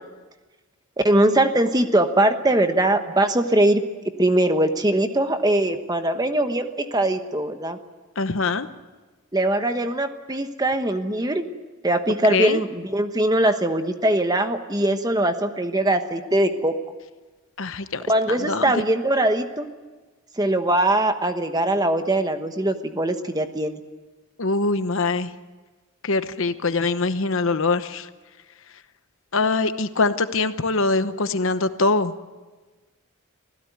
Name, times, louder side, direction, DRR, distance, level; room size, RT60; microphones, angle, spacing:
voice 1, 1.0-3.8 4.2-7.8 9.3-11.4 11.8-16.7 18.1-19.7 20.4-23.8, right 1 dB, 15° right, 8 dB, 1.2 m, -21 dB
voice 2, 8.2-8.7 12.3-12.6 17.6-18.0 18.3-18.7 24.4-25.3 26.0-28.1 29.3-32.1, left 3 dB, 60° left, 11 dB, 1.0 m, -23 dB
25.5 x 16.5 x 9.4 m, 1.3 s
head